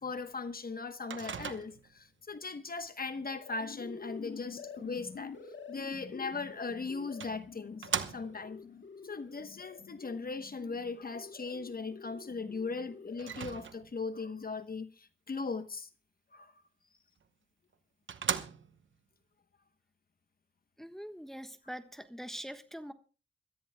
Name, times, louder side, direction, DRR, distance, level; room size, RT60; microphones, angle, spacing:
voice 1, 0.0-5.3 5.7-8.6 9.0-15.9 16.3-16.5, left 4 dB, 50° left, 1.0 m, -39 dB
Microwave oven, 1.1-2.0 6.4-6.5 7.2-8.6 13.2-14.1 17.2-17.3 17.7-17.8 18.1-19.0, right 7 dB, 85° right, 0.9 m, -38 dB
sound 1, 3.1-13.6, left 5 dB, 75° left, 1.8 m, -48 dB
voice 2, 20.8-22.9, equal, ahead, 1.3 m, -43 dB
26.5 x 14.0 x 2.2 m
cardioid pair, 65°, 19 cm